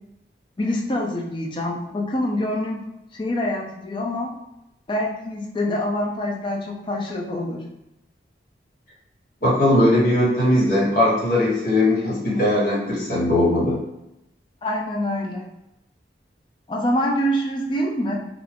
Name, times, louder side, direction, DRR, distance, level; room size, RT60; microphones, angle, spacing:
voice 1, 0.6-2.8 3.1-4.3 4.9-7.6 14.6-15.5 16.7-18.1, left 1 dB, 25° left, -1 dB, 0.4 m, -25 dB
voice 2, 9.4-13.8, left 1 dB, 50° left, -8 dB, 1.4 m, -19 dB
2.4 x 2.3 x 3.3 m, 0.89 s
head